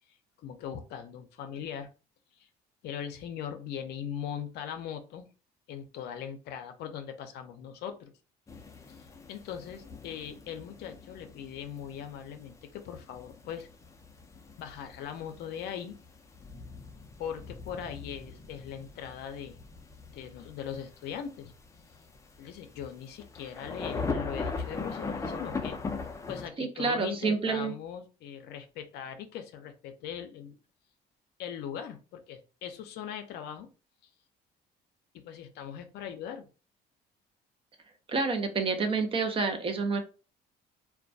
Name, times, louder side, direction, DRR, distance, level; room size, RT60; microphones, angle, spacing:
voice 1, 0.1-1.9 2.3-2.5 2.8-5.3 5.7-8.1 8.9-13.7 14.6-16.0 17.2-19.6 20.1-21.5 22.4-25.8 26.3-30.6 31.4-33.7 35.1-36.5, left 8 dB, 75° left, 7 dB, 0.5 m, -40 dB
sound 1, 8.5-26.5, left 4 dB, 20° left, 0.4 m, -40 dB
voice 2, 26.6-27.7 38.1-40.0, right 4 dB, 30° right, 5 dB, 0.5 m, -28 dB
2.2 x 2.1 x 2.6 m, 0.33 s
cardioid pair, 110°, 17 cm